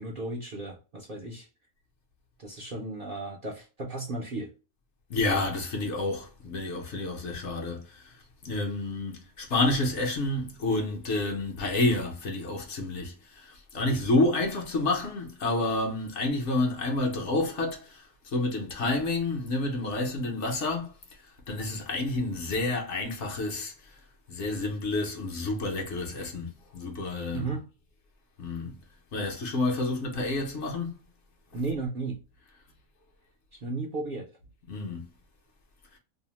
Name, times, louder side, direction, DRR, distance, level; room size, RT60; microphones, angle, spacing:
voice 1, 0.0-1.5 2.4-4.5 27.3-27.6 31.5-32.2 33.6-34.3, right 3 dB, 50° right, 0.6 m, -34 dB
voice 2, 5.1-8.1 8.4-18.0 18.3-21.0 21.5-23.7 24.3-27.5 28.4-28.7 29.1-31.0 34.7-35.1, left 2 dB, 60° left, 1.0 m, -29 dB
2.8 x 2.0 x 2.9 m
omnidirectional pair, 1.5 m